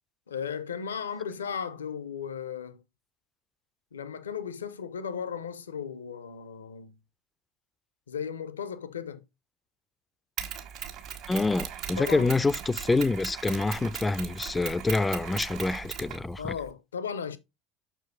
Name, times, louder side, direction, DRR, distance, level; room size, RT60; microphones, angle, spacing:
voice 1, 0.3-2.8 3.9-6.9 8.1-9.2 12.0-12.4 16.4-17.4, left 7 dB, 80° left, 0.6 m, -36 dB
Mechanisms, 10.4-16.7, right 9 dB, 55° right, 1.6 m, -38 dB
voice 2, 11.3-16.6, left 3 dB, 15° left, 0.4 m, -27 dB
6.3 x 4.5 x 4.0 m
figure-of-eight pair, 65°, 0 cm